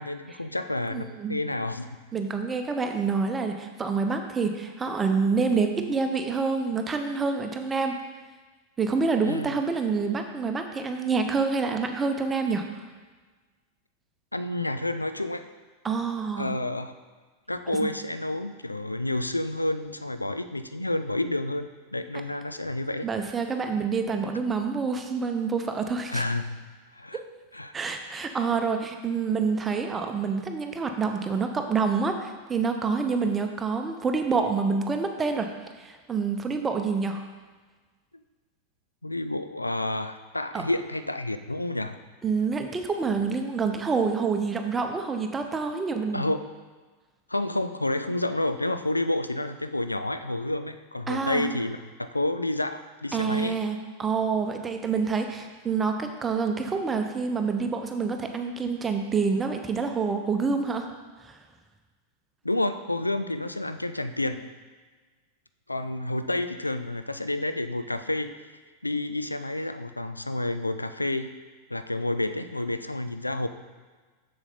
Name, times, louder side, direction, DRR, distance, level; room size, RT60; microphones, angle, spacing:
voice 1, 0.0-1.9 9.2-9.5 14.3-15.4 16.4-16.9 17.5-23.1 26.1-26.4 26.9-27.2 27.5-27.7 39.0-42.0 46.1-46.4 47.3-53.6 62.4-64.4 65.7-68.3 68.8-71.3 71.7-73.5, left 2 dB, 85° left, 10 dB, 0.4 m, -29 dB
voice 2, 0.9-1.4 2.1-7.9 8.8-12.6 15.8-16.6 17.7-17.9 23.0-26.2 27.7-35.5 35.8-37.2 40.5-40.6 42.2-46.2 51.1-51.6 53.1-60.9 61.2-61.4, right 5 dB, 15° right, 5 dB, 0.8 m, -27 dB
6.9 x 6.9 x 4.1 m, 1.4 s
figure-of-eight pair, 90°, 0 cm